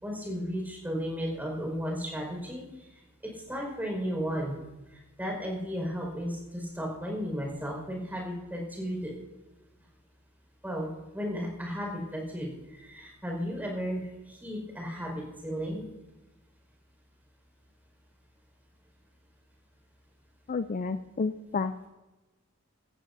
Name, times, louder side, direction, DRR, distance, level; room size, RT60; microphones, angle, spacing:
voice 1, 0.0-2.6 3.5-4.6 4.9-9.1 10.6-10.9 11.1-15.8, equal, 10° right, -1 dB, 4.9 m, -34 dB
voice 2, 20.5-21.9, left 4 dB, 35° left, 11 dB, 0.4 m, -31 dB
16.5 x 15.0 x 2.7 m, 1.1 s
head